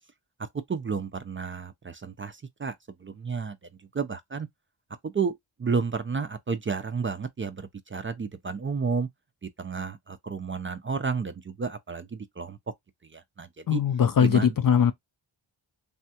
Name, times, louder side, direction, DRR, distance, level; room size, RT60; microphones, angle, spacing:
voice 1, 0.4-2.8 3.0-3.6 3.9-4.5 5.0-9.1 9.4-12.6 13.1-13.8 14.2-14.6, right 5 dB, 25° right, 0.4 m, -31 dB
voice 2, 13.7-14.9, left 8 dB, 45° left, 0.4 m, -21 dB
3.4 x 2.2 x 2.7 m
cardioid pair, 65°, 49 cm